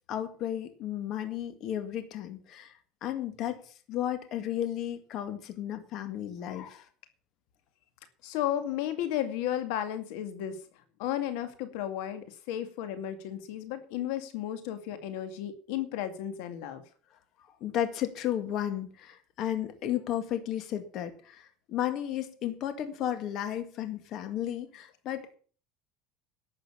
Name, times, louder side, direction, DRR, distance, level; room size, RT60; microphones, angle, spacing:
voice 1, 0.0-6.9 17.5-25.4, left 11 dB, 50° left, 8 dB, 2.1 m, -34 dB
voice 2, 8.2-10.6 11.0-16.8, left 11 dB, 75° left, 9 dB, 2.2 m, -33 dB
12.0 x 8.0 x 8.4 m, 0.41 s
cardioid pair, 135°, 0 cm